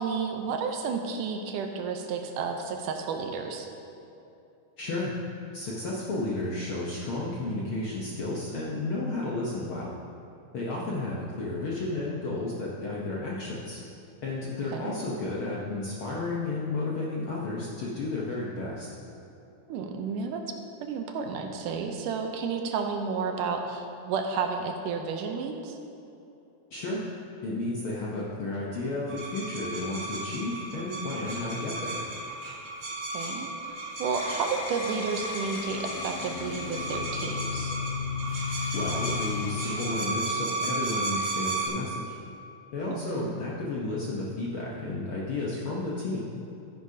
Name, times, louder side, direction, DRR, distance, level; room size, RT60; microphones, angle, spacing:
voice 1, 0.0-3.7 10.8-11.0 14.7-14.9 19.7-20.6 20.8-25.8 33.1-37.8 42.9-43.3, right 5 dB, 85° right, 4 dB, 2.3 m, -32 dB
voice 2, 4.8-5.1 5.5-9.9 10.5-13.8 14.2-18.9 26.7-27.0 27.4-32.0 38.7-42.2 42.7-46.3, left 2 dB, 65° left, -5 dB, 1.3 m, -32 dB
sound 1, 29.1-41.7, right 2 dB, 55° right, 2.6 m, -34 dB
sound 2, 34.0-40.6, left 6 dB, 90° left, 2.3 m, -36 dB
13.5 x 10.0 x 2.8 m, 2.8 s
omnidirectional pair, 3.6 m